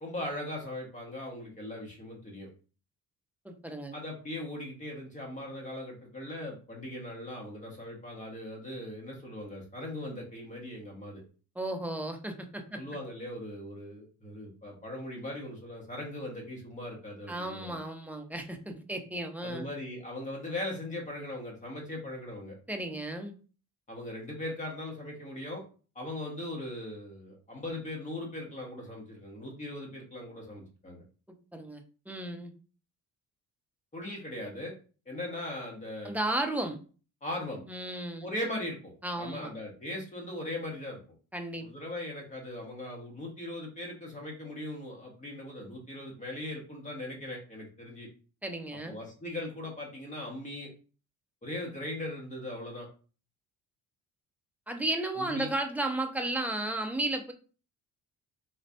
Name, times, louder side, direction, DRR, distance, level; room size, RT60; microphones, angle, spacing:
voice 1, 0.0-2.5 3.9-11.2 12.8-17.8 19.4-22.6 23.9-25.6 25.9-31.0 33.9-34.7 35.0-36.2 37.2-37.6 38.2-41.0 41.6-48.1 48.8-50.7 51.4-52.9 55.2-55.5, left 1 dB, 20° left, 0 dB, 1.4 m, -39 dB
voice 2, 3.4-4.0 11.6-12.8 17.3-19.6 22.7-23.3 31.5-32.5 36.0-36.8 37.7-38.3 39.0-39.5 41.3-41.7 48.4-49.0 54.7-57.3, right 1 dB, 5° right, 4 dB, 0.5 m, -34 dB
4.2 x 3.1 x 2.7 m, 0.37 s
cardioid pair, 125°, 33 cm